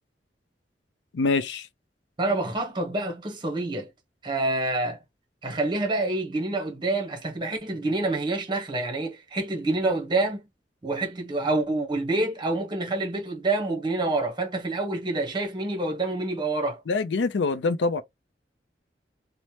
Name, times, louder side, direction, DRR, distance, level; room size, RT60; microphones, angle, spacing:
voice 1, 1.1-1.7 16.9-18.0, left 3 dB, 80° left, 0.4 m, -25 dB
voice 2, 2.2-3.9 4.2-5.0 5.4-10.4 10.8-16.8, right 2 dB, 25° right, 0.9 m, -27 dB
3.1 x 2.0 x 2.8 m
head